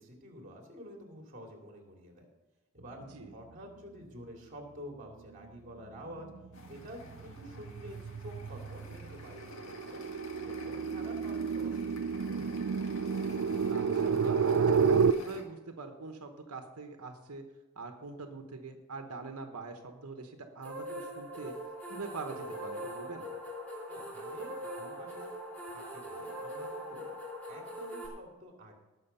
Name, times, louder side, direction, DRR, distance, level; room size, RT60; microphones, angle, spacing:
voice 1, 0.0-2.3 2.7-3.0 3.3-6.3 6.7-10.0 10.3-12.8 23.9-25.3 25.7-27.0 27.5-28.8, equal, 35° right, 1 dB, 2.6 m, -49 dB
sound 1, 5.4-5.8 6.2-15.1, right 6 dB, 70° right, 0.4 m, -30 dB
sound 2, 6.5-15.4, left 2 dB, 65° left, 1.9 m, -50 dB
voice 2, 13.7-17.4 17.7-21.5 21.9-23.3, right 3 dB, 90° right, 5 dB, 1.1 m, -44 dB
sound 3, 20.6-28.1, equal, 5° left, 2.6 m, -41 dB
19.0 x 6.4 x 5.6 m, 1.1 s
head